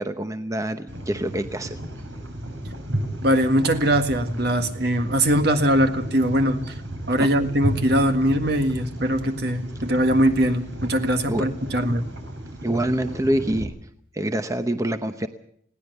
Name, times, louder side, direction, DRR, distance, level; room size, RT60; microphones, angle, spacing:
voice 1, 0.0-1.8 7.2-7.3 11.3-11.4 11.7-11.8 12.6-13.7 14.1-15.3, right 1 dB, 15° right, 9 dB, 0.8 m, -26 dB
sound 1, 0.9-13.6, right 1 dB, 70° right, 5.7 m, -33 dB
voice 2, 3.2-6.6 7.1-12.0, equal, 55° right, 8 dB, 1.8 m, -21 dB
20.5 x 17.0 x 8.0 m, 0.67 s
head